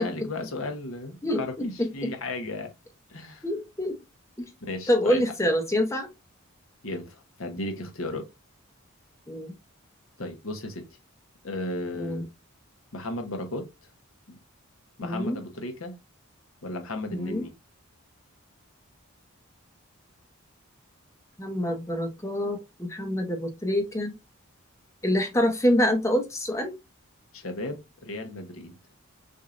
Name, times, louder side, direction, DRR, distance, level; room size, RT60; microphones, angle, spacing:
voice 1, 0.0-2.7 3.1-3.5 4.6-5.3 6.8-8.3 10.2-10.9 11.4-12.3 12.9-13.7 14.3-14.4 15.0-16.0 16.6-17.5 27.3-28.8, left 2 dB, 70° left, 1.0 m, -35 dB
voice 2, 1.2-2.1 3.4-4.0 4.4-4.5 4.9-6.1 9.3-9.5 12.0-12.2 15.0-15.4 17.1-17.4 21.4-24.1 25.0-26.7, left 1 dB, 15° left, 0.8 m, -26 dB
6.2 x 2.7 x 2.5 m
head